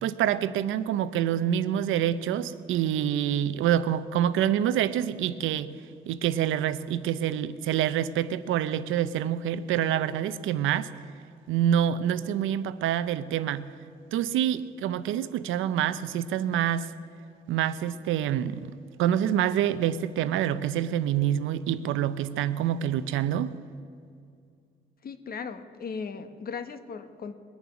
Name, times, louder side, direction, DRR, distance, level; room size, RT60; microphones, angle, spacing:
voice 1, 0.0-5.7 6.1-10.9 11.5-13.7 14.1-16.9 17.5-23.5, right 10 dB, 85° right, 14 dB, 0.7 m, -26 dB
voice 2, 25.0-27.3, left 5 dB, 50° left, 10 dB, 1.3 m, -37 dB
20.5 x 7.2 x 9.7 m, 2.3 s
cardioid pair, 90°, 20 cm